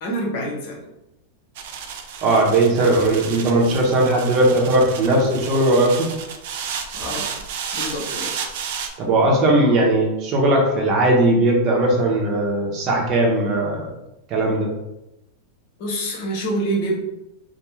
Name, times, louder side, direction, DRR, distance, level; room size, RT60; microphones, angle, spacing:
voice 1, 0.0-0.8 6.9-7.3 7.7-8.4 15.8-17.0, right 1 dB, 60° left, -1 dB, 0.9 m, -26 dB
Foam polymer packaging creaks, 1.6-8.9, right 7 dB, 65° right, 0.3 m, -32 dB
voice 2, 2.2-6.1 9.0-13.9 14.3-14.7, right 2 dB, 45° right, -1 dB, 0.8 m, -18 dB
2.4 x 2.1 x 3.1 m, 0.92 s
hypercardioid pair, 110°, 0 cm